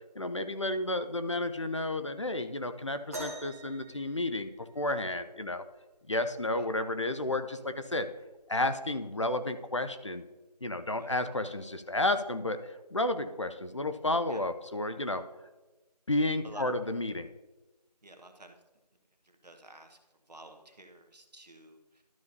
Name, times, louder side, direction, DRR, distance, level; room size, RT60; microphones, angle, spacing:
voice 1, 0.2-5.6 6.1-8.1 8.5-10.2 10.6-12.6 12.9-15.2 16.1-17.3, left 2 dB, 45° left, 9 dB, 0.5 m, -31 dB
sound 1, 3.1-5.0 6.7-6.8 7.6-7.8 8.7-8.8, right 1 dB, 20° right, 1.2 m, -44 dB
voice 2, 18.0-18.5 19.2-20.0 20.3-22.0, right 2 dB, 75° right, 5 dB, 1.3 m, -51 dB
12.5 x 6.7 x 2.7 m, 1.1 s
figure-of-eight pair, 170°, 21 cm